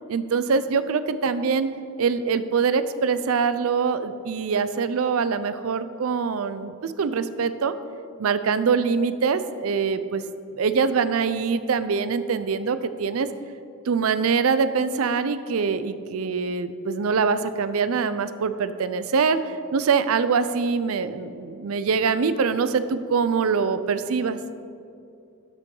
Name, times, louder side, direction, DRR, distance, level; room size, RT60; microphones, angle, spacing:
voice 1, 0.1-1.7 2.0-7.7 8.2-10.2 10.5-13.3 13.9-24.4, right 5 dB, 75° right, 12 dB, 0.5 m, -24 dB
12.0 x 6.7 x 3.8 m, 2.5 s
head